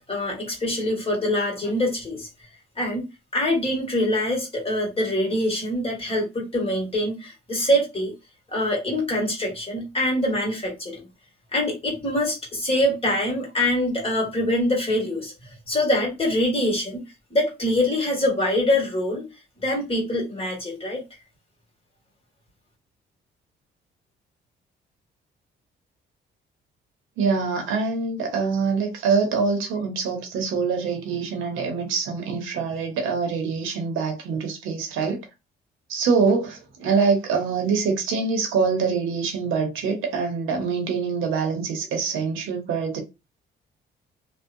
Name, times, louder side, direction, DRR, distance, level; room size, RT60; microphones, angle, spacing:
voice 1, 0.1-2.3 2.8-3.0 3.3-8.1 8.5-11.1 11.5-17.0 17.3-19.3 19.6-21.0, left 1 dB, 30° left, 1.4 m, -24 dB
voice 2, 27.2-35.2 35.9-43.0, right 5 dB, 85° right, 0.8 m, -24 dB
2.6 x 2.2 x 2.5 m
cardioid pair, 90°, 20 cm